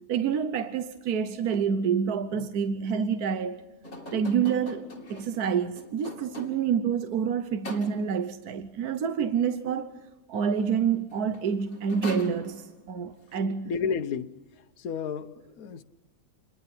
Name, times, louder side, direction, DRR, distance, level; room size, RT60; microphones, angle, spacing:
voice 1, 0.1-3.6 4.1-9.9 10.3-13.7, right 7 dB, 75° right, 1.4 m, -28 dB
sound 1, 3.8-6.8 7.6-8.3 10.9-11.0 11.3-12.9, left 1 dB, 45° left, 3.3 m, -42 dB
voice 2, 13.6-14.4 14.8-15.8, left 6 dB, 65° left, 1.4 m, -31 dB
27.5 x 21.5 x 5.7 m
omnidirectional pair, 1.7 m